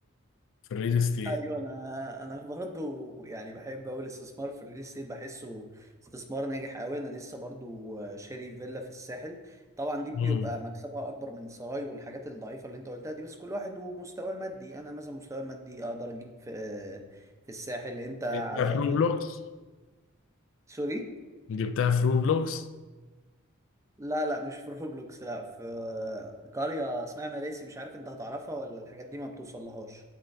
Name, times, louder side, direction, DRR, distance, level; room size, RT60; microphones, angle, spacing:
voice 1, 0.7-1.4 10.2-10.5 18.3-19.4 21.5-22.7, left 6 dB, 65° left, 0.3 m, -26 dB
voice 2, 1.2-18.8 20.7-21.1 24.0-30.0, equal, 15° right, 0.6 m, -37 dB
9.7 x 4.4 x 2.6 m
head